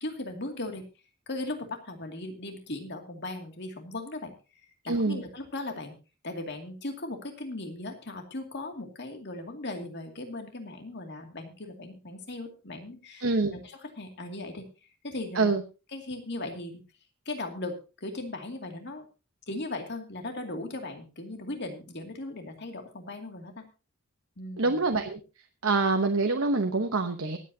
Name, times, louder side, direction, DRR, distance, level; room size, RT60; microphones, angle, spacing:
voice 1, 0.0-0.8 1.3-4.3 4.8-5.9 6.2-14.6 15.0-15.5 15.9-16.8 17.3-17.7 18.0-19.1 19.5-23.6 24.4-24.8, left 2 dB, 50° left, 5 dB, 2.4 m, -38 dB
voice 2, 4.9-5.2 13.2-13.5 15.3-15.6 24.6-25.2 25.6-27.4, right 3 dB, 60° right, 5 dB, 1.0 m, -25 dB
24.5 x 8.4 x 2.8 m, 0.31 s
head